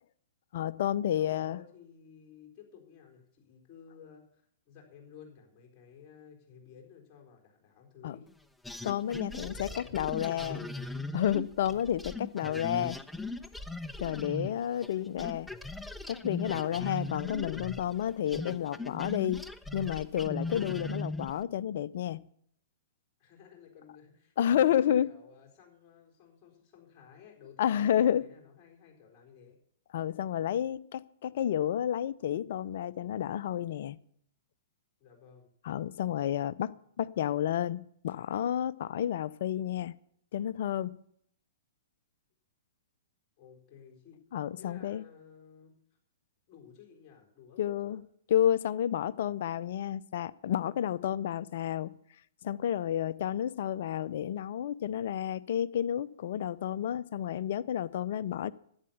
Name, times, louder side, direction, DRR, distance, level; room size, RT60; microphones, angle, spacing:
voice 1, 0.5-1.6 8.0-8.2 8.8-10.6 11.1-13.0 14.0-15.5 16.1-19.4 19.7-22.2 24.4-25.1 27.6-28.2 29.9-34.0 35.6-39.9 40.3-40.9 44.3-45.0 47.6-48.0 48.3-51.9 52.4-58.5, left 10 dB, 55° left, 0.5 m, -30 dB
voice 2, 1.2-8.3 9.2-10.7 11.6-11.9 23.2-29.6 35.0-35.5 43.4-44.2 44.6-45.8 46.5-48.0, left 7 dB, 30° left, 4.2 m, -54 dB
sound 1, 8.6-14.9 15.2-21.4, left 2 dB, 5° left, 0.6 m, -39 dB
11.0 x 8.8 x 7.1 m
figure-of-eight pair, 115°, 0 cm